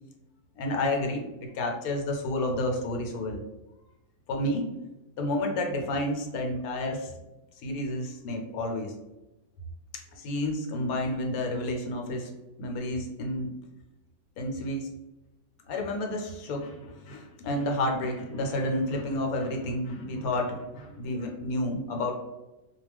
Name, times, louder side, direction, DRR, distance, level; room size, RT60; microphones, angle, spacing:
voice 1, 0.6-3.4 4.3-4.6 5.2-7.1 7.6-8.9 10.1-12.3 12.6-13.5 14.4-14.9 15.7-22.1, left 1 dB, 80° left, 2 dB, 1.1 m, -30 dB
2.4 x 2.2 x 3.3 m, 1.0 s
omnidirectional pair, 1.5 m